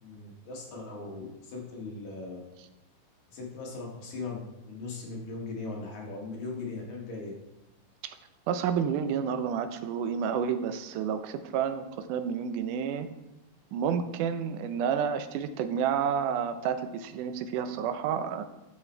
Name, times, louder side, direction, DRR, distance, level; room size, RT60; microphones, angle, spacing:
voice 1, 0.0-2.4 3.3-7.3, left 3 dB, 70° left, -2 dB, 3.2 m, -39 dB
voice 2, 8.5-13.1 13.7-18.4, right 7 dB, 90° right, 9 dB, 2.2 m, -30 dB
11.5 x 6.0 x 4.5 m, 0.97 s
omnidirectional pair, 3.5 m